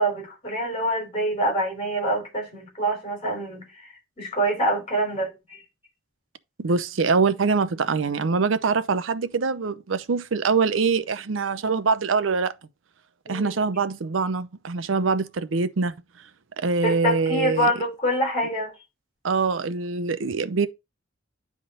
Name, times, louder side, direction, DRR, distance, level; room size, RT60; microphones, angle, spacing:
voice 1, 0.0-3.7 4.2-5.6 13.3-13.6 16.8-18.7, right 1 dB, 35° left, 3.4 m, -25 dB
voice 2, 6.6-12.5 13.3-15.9 16.6-17.7 19.2-20.7, right 4 dB, 85° right, 0.6 m, -24 dB
10.0 x 3.7 x 3.9 m
head